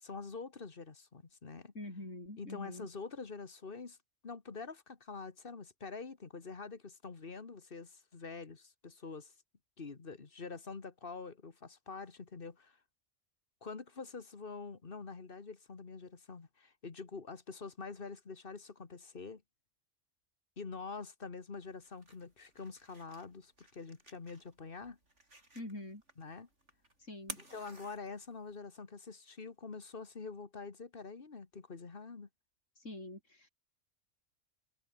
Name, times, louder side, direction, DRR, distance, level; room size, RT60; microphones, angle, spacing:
voice 1, 0.0-1.7 2.4-4.0 4.2-9.3 9.8-12.8 13.6-19.4 20.6-25.0 26.2-26.5 27.4-32.3, left 4 dB, 45° left, 1.8 m, -46 dB
voice 2, 1.7-2.9 25.5-26.0 27.0-27.4 32.8-33.5, left 1 dB, 70° left, 7.6 m, -45 dB
sound 1, 21.6-28.6, right 2 dB, 65° right, 7.2 m, -54 dB
omnidirectional pair, 1.3 m